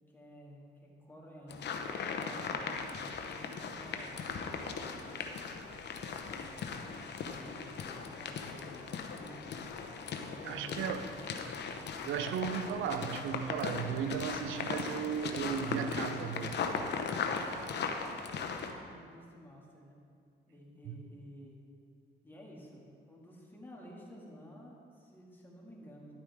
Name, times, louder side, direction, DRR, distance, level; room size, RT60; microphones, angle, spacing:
voice 1, 0.1-5.9 6.7-9.7 10.3-11.5 16.2-16.5 17.2-20.0 20.5-21.6 22.2-26.1, equal, 10° left, -3 dB, 2.2 m, -53 dB
sound 1, 1.5-18.7, left 5 dB, 60° left, 0.9 m, -38 dB
voice 2, 10.4-11.0 12.0-16.5 20.9-21.0, right 8 dB, 80° right, 9 dB, 0.5 m, -35 dB
11.5 x 8.7 x 3.6 m, 2.3 s
cardioid pair, 90°, 20 cm